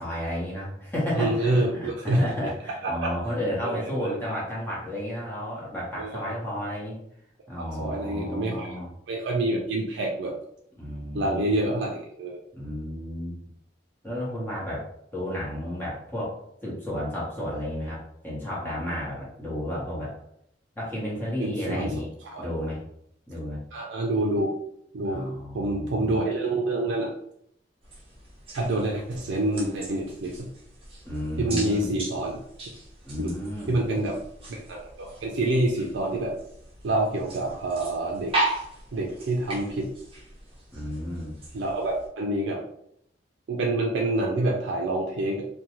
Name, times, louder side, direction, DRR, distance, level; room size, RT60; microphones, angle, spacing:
voice 1, 0.0-7.0 7.5-8.9 10.8-11.5 12.5-13.4 14.0-14.9 15.1-20.1 20.8-22.1 22.4-22.8 23.3-23.6 25.0-26.2 31.0-31.9 33.0-33.8 40.7-41.3, equal, 10° left, -7 dB, 0.9 m, -32 dB
voice 2, 1.2-2.5 2.8-3.1 3.6-4.1 6.0-6.2 7.6-8.8 9.1-10.4 11.1-12.4 21.4-21.9 22.3-22.5 23.7-24.6 24.9-25.3 25.5-27.1 28.5-30.5 31.4-32.4 33.2-33.3 33.7-34.2 34.5-36.4 36.8-38.4 38.9-39.9 41.5-42.6 43.5-45.5, right 1 dB, 75° right, 0 dB, 0.4 m, -27 dB
sound 1, 27.8-42.1, right 2 dB, 30° right, 0.9 m, -37 dB
2.6 x 2.2 x 2.9 m, 0.72 s
head